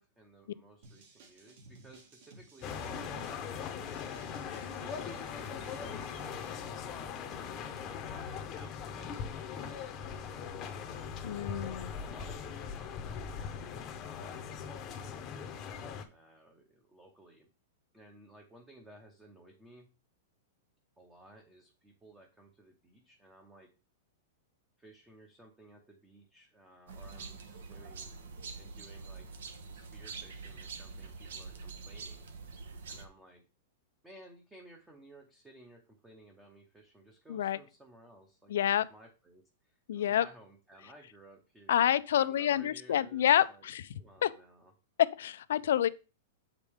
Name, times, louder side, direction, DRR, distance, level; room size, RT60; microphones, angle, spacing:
voice 1, 0.0-3.7 4.7-7.4 8.0-15.5 16.1-17.5 17.9-19.9 21.0-23.7 24.8-28.1 28.6-29.3 29.7-32.3 32.6-33.4 34.0-41.8 42.2-43.7 43.9-44.7, right 1 dB, 5° right, 0.8 m, -57 dB
sound 1, 0.8-6.8, right 2 dB, 50° right, 1.6 m, -56 dB
sound 2, 2.6-16.0, left 6 dB, 25° left, 0.8 m, -40 dB
voice 2, 11.2-11.9 37.3-37.6 38.5-38.9 39.9-40.2 41.7-43.9 44.2-44.3 45.0-45.9, left 11 dB, 70° left, 0.5 m, -28 dB
sound 3, 26.9-33.1, right 4 dB, 75° right, 1.1 m, -45 dB
7.3 x 5.0 x 3.5 m
supercardioid pair, 170°, 0 cm